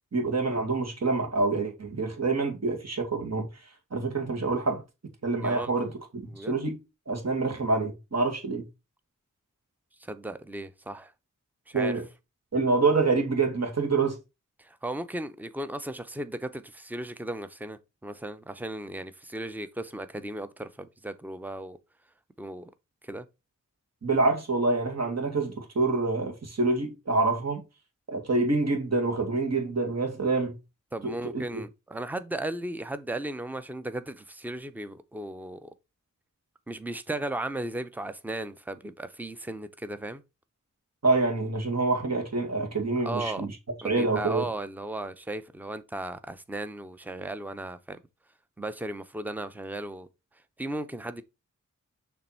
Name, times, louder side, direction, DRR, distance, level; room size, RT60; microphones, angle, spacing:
voice 1, 0.1-3.5 3.9-4.8 5.2-6.8 7.1-8.6 11.7-12.0 12.5-14.2 24.0-27.6 28.1-30.5 31.0-31.6 41.0-43.5 43.8-44.5, right 3 dB, 55° right, 2.1 m, -26 dB
voice 2, 10.0-11.1 11.7-11.9 14.6-21.8 22.4-22.7 23.0-23.3 30.9-35.7 36.7-40.2 43.0-43.5 43.8-48.0 48.6-50.1 50.6-51.2, right 1 dB, 5° right, 0.6 m, -36 dB
6.6 x 3.4 x 4.4 m
wide cardioid pair, 60°, 31 cm